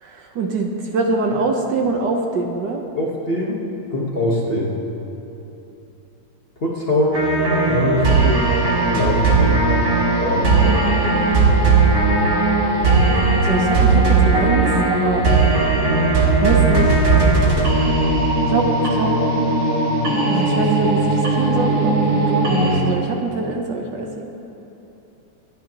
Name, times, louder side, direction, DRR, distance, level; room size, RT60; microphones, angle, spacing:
voice 1, 0.0-2.8 12.8-12.9 13.4-15.3 16.4-17.0 18.5-19.1 20.3-24.2, right 3 dB, 65° right, 2 dB, 1.4 m, -24 dB
voice 2, 3.0-3.6 3.9-4.7 6.6-7.3 7.6-8.5 8.9-9.6 10.2-10.9, left 1 dB, 35° left, -4 dB, 1.1 m, -22 dB
sound 1, 7.1-22.8, right 3 dB, 45° right, 2.2 m, -17 dB
25.5 x 9.6 x 2.9 m, 3.0 s
omnidirectional pair, 2.3 m